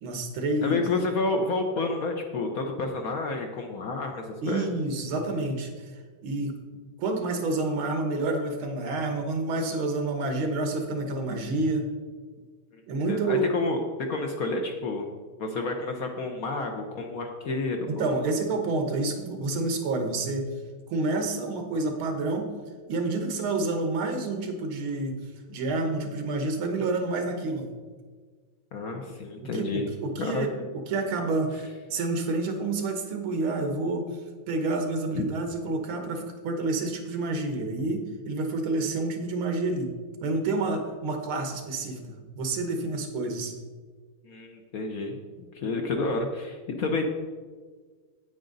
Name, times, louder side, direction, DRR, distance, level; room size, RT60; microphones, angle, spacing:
voice 1, 0.0-0.8 4.4-5.9 6.2-6.5 7.0-11.9 12.9-13.5 17.9-20.5 20.9-22.5 22.9-25.2 25.5-27.7 29.4-30.5 30.9-34.1 34.5-39.9 40.2-43.5, right 2 dB, 90° right, 4 dB, 2.0 m, -29 dB
voice 2, 0.6-4.7 13.1-13.8 14.1-15.0 15.4-18.3 28.7-29.9 30.2-30.5 35.1-35.2 44.2-45.2 45.5-47.1, left 3 dB, 60° left, 3 dB, 1.0 m, -30 dB
8.9 x 8.8 x 3.9 m, 1.5 s
omnidirectional pair, 2.2 m